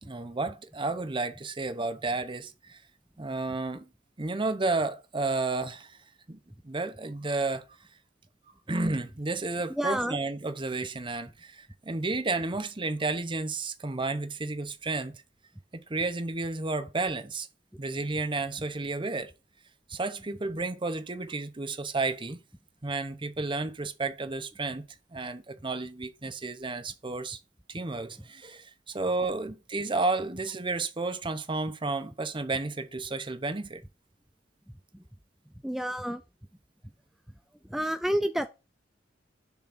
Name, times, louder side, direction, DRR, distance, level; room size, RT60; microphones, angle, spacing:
voice 1, 0.0-2.8 3.2-3.9 4.2-6.0 6.3-6.4 6.6-7.6 8.7-15.1 15.7-17.5 17.8-19.3 19.9-22.4 22.8-24.8 25.1-27.4 27.7-33.8, right 3 dB, 25° right, 0.8 m, -32 dB
voice 2, 9.8-10.2 35.6-36.2 37.7-38.5, equal, ahead, 0.4 m, -29 dB
7.0 x 3.7 x 6.0 m
head